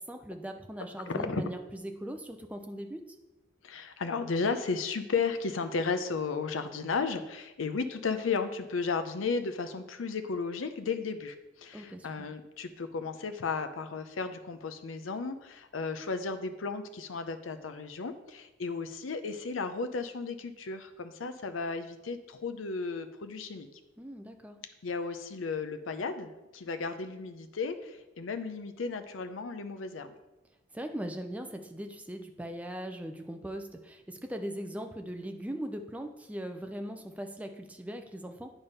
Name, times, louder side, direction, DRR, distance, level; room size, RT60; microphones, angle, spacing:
voice 1, 0.1-3.0 11.7-12.1 24.0-24.6 30.7-38.5, equal, 5° right, 5 dB, 0.5 m, -40 dB
voice 2, 1.1-1.4 3.6-23.7 24.8-30.1, left 4 dB, 90° left, 9 dB, 0.6 m, -34 dB
8.9 x 3.5 x 5.5 m, 1.0 s
head